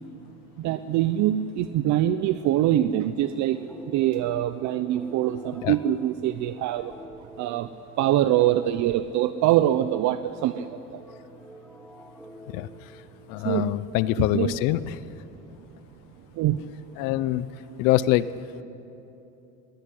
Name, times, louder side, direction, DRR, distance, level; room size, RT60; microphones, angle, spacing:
voice 1, 0.6-3.6 3.9-6.9 7.4-7.7 8.0-11.0 13.4-13.8 14.2-14.5 16.4-16.6, right 12 dB, 60° right, 12 dB, 0.8 m, -24 dB
sound 1, 3.3-13.7, equal, ahead, 1.2 m, -47 dB
voice 2, 13.3-15.0 17.0-17.5 17.8-18.3, left 15 dB, 75° left, 16 dB, 0.9 m, -24 dB
21.5 x 17.5 x 9.7 m, 3.0 s
cardioid pair, 125°, 33 cm